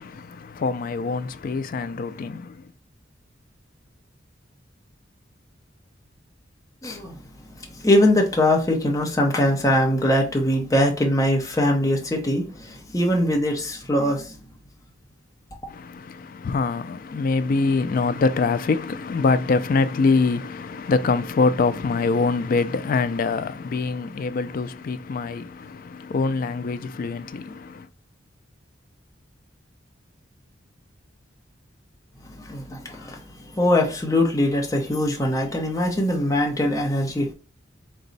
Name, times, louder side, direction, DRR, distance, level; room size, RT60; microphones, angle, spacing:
voice 1, 0.0-2.7 15.7-27.9, left 4 dB, 50° left, 0.3 m, -24 dB
voice 2, 6.8-7.2 7.8-14.3 32.4-33.2 33.5-37.3, left 1 dB, 20° left, 0.7 m, -22 dB
4.0 x 2.3 x 3.9 m
head